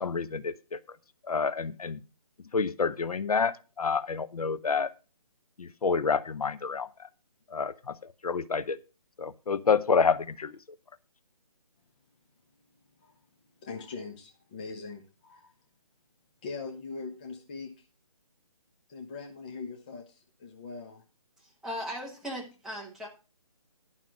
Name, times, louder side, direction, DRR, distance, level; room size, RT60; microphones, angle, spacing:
voice 1, 0.0-0.8 1.3-2.0 2.5-4.9 5.6-7.1 7.5-8.0 8.2-8.8 9.2-10.6, left 5 dB, 80° left, 14 dB, 0.8 m, -28 dB
voice 2, 13.6-15.5 16.4-17.8 18.9-21.0, left 4 dB, 15° left, 3 dB, 0.6 m, -41 dB
voice 3, 21.4-23.1, equal, ahead, -3 dB, 1.1 m, -38 dB
11.0 x 5.8 x 6.0 m, 0.32 s
hypercardioid pair, 165°, 19 cm